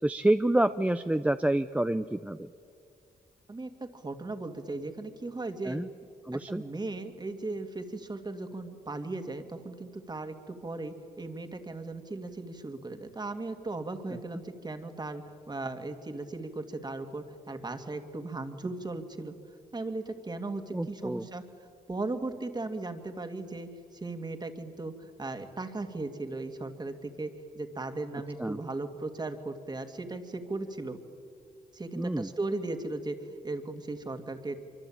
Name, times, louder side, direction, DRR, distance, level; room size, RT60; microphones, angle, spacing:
voice 1, 0.0-2.5 5.6-5.9 6.2-6.6 20.7-21.3 28.4-28.6 31.9-32.3, right 1 dB, 10° right, 10 dB, 0.6 m, -28 dB
voice 2, 3.5-5.8 6.3-19.3 19.7-21.4 21.9-31.0 31.7-34.6, right 2 dB, 25° right, 7 dB, 2.5 m, -37 dB
25.5 x 24.5 x 8.9 m, 2.3 s
cardioid pair, 90°, 15 cm